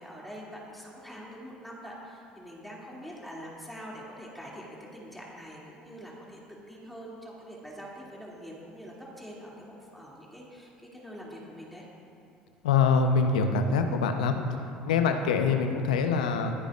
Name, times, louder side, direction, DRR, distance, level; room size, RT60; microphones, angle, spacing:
voice 1, 0.0-11.9, equal, ahead, -4 dB, 2.7 m, -44 dB
voice 2, 12.6-14.4 14.9-16.5, left 5 dB, 75° left, 6 dB, 0.9 m, -24 dB
24.0 x 10.0 x 2.6 m, 2.6 s
hypercardioid pair, 60°, 4 cm